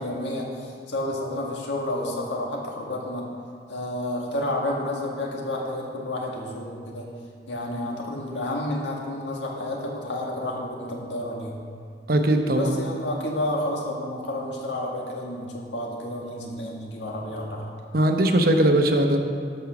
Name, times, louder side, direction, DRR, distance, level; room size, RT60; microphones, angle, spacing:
voice 1, 0.0-3.3 3.7-7.1 7.5-11.6 12.5-17.7, left 1 dB, 90° left, -1 dB, 1.8 m, -30 dB
voice 2, 12.1-12.7 17.9-19.2, right 1 dB, 55° right, 5 dB, 0.9 m, -20 dB
13.0 x 5.5 x 6.0 m, 2.2 s
head